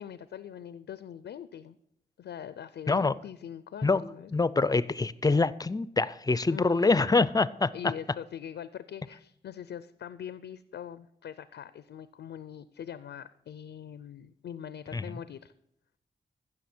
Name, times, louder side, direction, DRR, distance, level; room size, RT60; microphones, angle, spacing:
voice 1, 0.0-1.8 2.2-4.3 6.5-7.1 7.7-15.5, left 9 dB, 85° left, 0.4 m, -42 dB
voice 2, 2.9-3.2 3.8-7.7 14.9-15.1, left 3 dB, 20° left, 0.4 m, -25 dB
15.5 x 6.3 x 4.3 m
cardioid pair, 60°, 18 cm